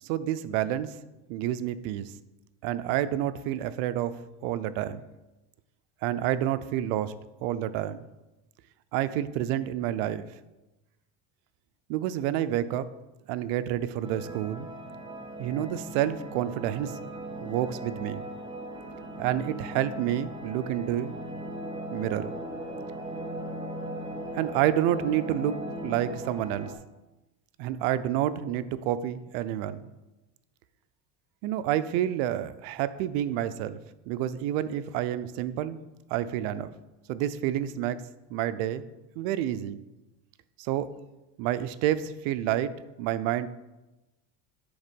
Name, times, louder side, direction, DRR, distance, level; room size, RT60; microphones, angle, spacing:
voice 1, 0.0-1.0 1.3-2.1 2.6-4.1 4.4-5.0 6.0-7.1 7.4-8.0 8.9-10.3 11.9-12.9 13.3-14.7 15.4-17.0 17.4-18.2 19.2-21.2 21.9-22.3 24.3-25.6 25.8-26.7 27.6-29.9 31.4-33.8 34.1-35.8 36.1-36.7 37.1-38.0 38.3-38.8 39.2-39.8 40.6-40.9 41.4-42.7 43.0-43.5, right 12 dB, 80° right, 14 dB, 0.5 m, -29 dB
sound 1, 14.0-26.8, right 1 dB, 15° right, 0.4 m, -38 dB
7.1 x 3.5 x 5.2 m, 1.0 s
cardioid pair, 140°, 39 cm